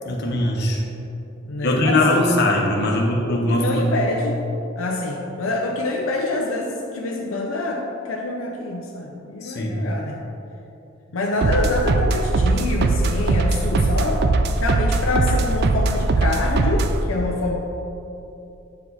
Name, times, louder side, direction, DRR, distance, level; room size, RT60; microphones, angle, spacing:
voice 1, 0.1-0.8 1.6-4.0 9.4-9.8, left 1 dB, 55° left, 0 dB, 1.0 m, -21 dB
voice 2, 1.4-2.2 2.7-4.4 4.8-10.2 11.1-14.2 14.6-17.6, left 2 dB, 80° left, -1 dB, 0.7 m, -26 dB
sound 1, 11.4-17.0, right 3 dB, 50° right, 0.4 m, -20 dB
9.3 x 4.8 x 4.1 m, 2.9 s
head